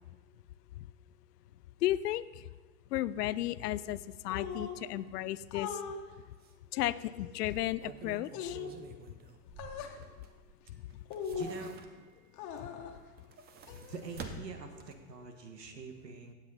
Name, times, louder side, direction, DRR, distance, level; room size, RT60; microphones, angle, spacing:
voice 1, 1.8-2.2 2.9-4.0 4.2-5.7 6.7-8.6, left 14 dB, 75° left, 17 dB, 0.6 m, -33 dB
sound 1, 4.3-4.8 5.5-6.0 6.7-7.6 8.3-8.8 9.6-10.0 11.1-11.7 12.3-13.0 13.7-14.5, left 7 dB, 35° left, 1.5 m, -41 dB
sound 2, 5.9-6.0 6.4-6.5 7.5-10.5 10.9-12.3 13.1-15.2 15.6-15.7, right 6 dB, 20° right, 0.7 m, -49 dB
voice 2, 11.3-11.8 13.8-16.3, right 5 dB, 90° right, 5 dB, 1.6 m, -45 dB
17.0 x 7.5 x 4.1 m, 1.4 s
hypercardioid pair, 115°, 48 cm